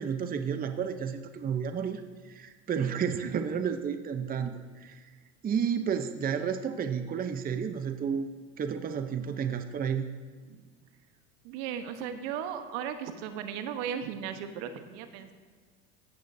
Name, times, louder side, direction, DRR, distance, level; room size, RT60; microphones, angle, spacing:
voice 1, 0.0-5.1 5.4-8.3 8.6-10.0, right 7 dB, 25° right, 8 dB, 0.7 m, -31 dB
voice 2, 11.4-15.3, right 8 dB, 70° right, 8 dB, 1.2 m, -36 dB
15.5 x 11.0 x 2.7 m, 1.5 s
hypercardioid pair, 85°, 37 cm